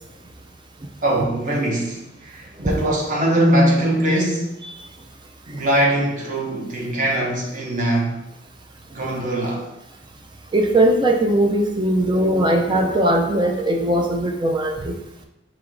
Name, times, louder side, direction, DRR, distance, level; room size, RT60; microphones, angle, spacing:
voice 1, 1.0-4.6 5.5-8.3 8.9-9.7, right 1 dB, 40° right, 1.0 m, -21 dB
voice 2, 10.5-14.9, right 1 dB, 25° right, 0.4 m, -19 dB
4.6 x 3.0 x 3.7 m
head